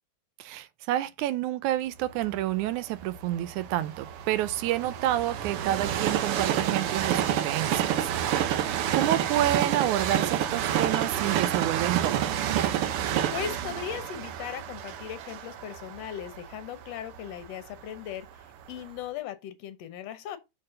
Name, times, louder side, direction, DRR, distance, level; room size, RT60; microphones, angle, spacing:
voice 1, 0.4-8.6 8.9-12.3, right 13 dB, 85° right, 2.1 m, -29 dB
Train, 2.2-18.2 18.8-18.9, right 10 dB, 70° right, 1.4 m, -29 dB
voice 2, 13.3-20.4, left 10 dB, 70° left, 1.9 m, -38 dB
6.4 x 4.2 x 6.4 m
omnidirectional pair, 3.4 m